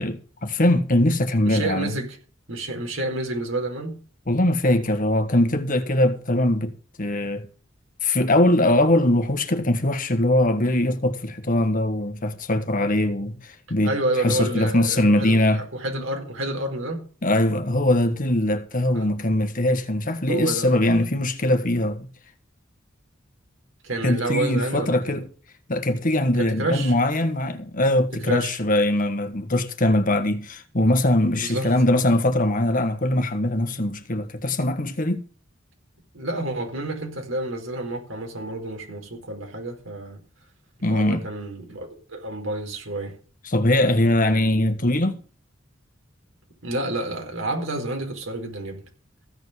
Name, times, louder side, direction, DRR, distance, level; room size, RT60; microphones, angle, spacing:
voice 1, 0.0-1.9 4.3-7.5 8.0-15.6 17.2-22.1 24.0-25.3 25.7-35.2 40.8-41.2 43.5-45.2, left 1 dB, 45° left, 1.5 m, -21 dB
voice 2, 1.4-2.2 2.5-4.0 13.8-17.0 18.9-19.1 20.3-21.0 23.8-25.2 26.4-26.9 28.2-28.6 31.4-31.7 36.1-40.2 40.9-43.2 46.6-48.8, right 2 dB, 80° right, 4.3 m, -29 dB
15.5 x 5.3 x 8.0 m
head